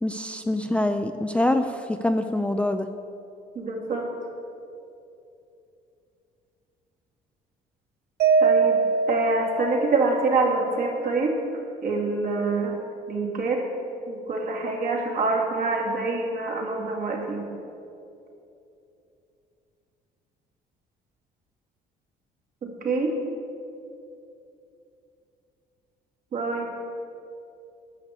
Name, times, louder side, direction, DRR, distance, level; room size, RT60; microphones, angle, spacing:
voice 1, 0.0-2.9, left 1 dB, 5° left, 7 dB, 0.4 m, -25 dB
voice 2, 3.6-4.1 8.4-8.8 9.1-11.3 11.8-12.8 13.1-13.6 14.1-17.5 22.6-23.1 26.3-26.7, right 3 dB, 55° right, -1 dB, 2.6 m, -26 dB
Mallet percussion, 8.2-10.5, right 4 dB, 70° right, 1.1 m, -23 dB
10.5 x 6.5 x 8.3 m, 2.7 s
cardioid pair, 110°, 17 cm